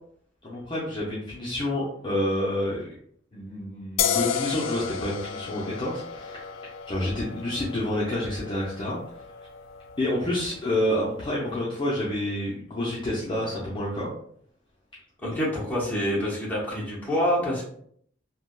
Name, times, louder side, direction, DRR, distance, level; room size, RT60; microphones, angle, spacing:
voice 1, 0.4-2.8 3.3-6.5 6.9-9.0 10.0-14.1, left 1 dB, 25° left, -7 dB, 0.6 m, -28 dB
sound 1, 4.0-11.3, left 7 dB, 85° left, 0.3 m, -33 dB
voice 2, 15.2-17.6, equal, 10° left, -7 dB, 1.0 m, -26 dB
3.3 x 2.2 x 2.4 m, 0.64 s
head